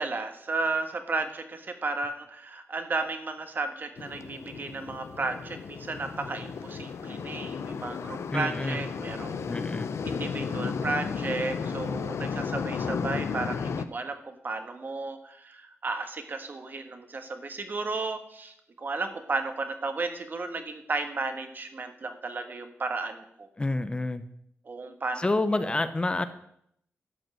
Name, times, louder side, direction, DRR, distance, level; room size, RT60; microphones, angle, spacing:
voice 1, 0.0-9.6 10.0-23.5 24.6-25.8, right 3 dB, 45° right, 7 dB, 1.4 m, -34 dB
sound 1, 4.0-13.8, left 6 dB, 80° left, 0.6 m, -34 dB
voice 2, 8.3-8.8 9.5-9.9 23.6-24.2 25.2-26.3, left 2 dB, 20° left, 11 dB, 0.6 m, -28 dB
12.0 x 5.3 x 7.8 m, 0.71 s
wide cardioid pair, 105°, 5 cm